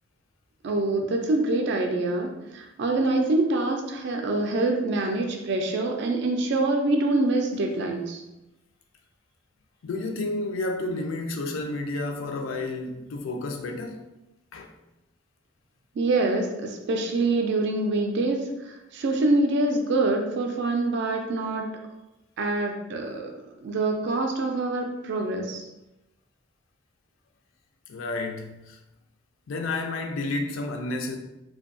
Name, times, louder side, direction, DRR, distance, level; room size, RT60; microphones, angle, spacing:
voice 1, 0.6-8.2 16.0-21.7 22.4-23.3 23.6-25.7, right 2 dB, 60° right, 0.4 m, -25 dB
voice 2, 9.8-14.1 14.5-14.7 27.9-28.8 29.5-31.2, left 2 dB, 90° left, 0.4 m, -31 dB
2.6 x 2.2 x 2.5 m
head